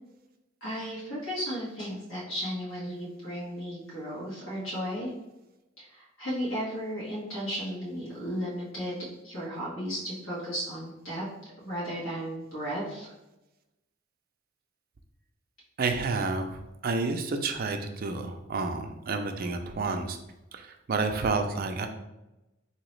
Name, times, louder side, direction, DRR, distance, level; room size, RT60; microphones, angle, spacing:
voice 1, 0.6-5.1 5.8-9.0 9.2-11.2 11.6-13.1, equal, 75° left, -7 dB, 1.4 m, -34 dB
voice 2, 15.8-20.2 20.5-21.9, right 3 dB, 45° right, 5 dB, 0.4 m, -30 dB
3.8 x 2.9 x 3.1 m, 0.96 s
head